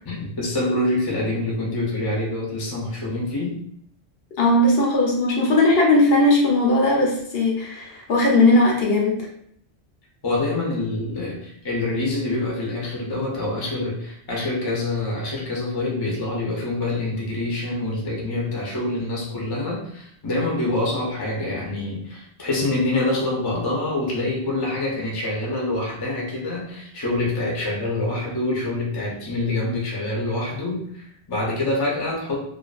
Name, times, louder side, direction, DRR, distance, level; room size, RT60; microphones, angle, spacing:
voice 1, 0.1-3.6 10.2-32.4, left 2 dB, 30° left, -3 dB, 0.5 m, -26 dB
voice 2, 4.4-9.1, left 2 dB, 70° left, -1 dB, 0.8 m, -18 dB
2.5 x 2.3 x 2.3 m, 0.68 s
omnidirectional pair, 1.1 m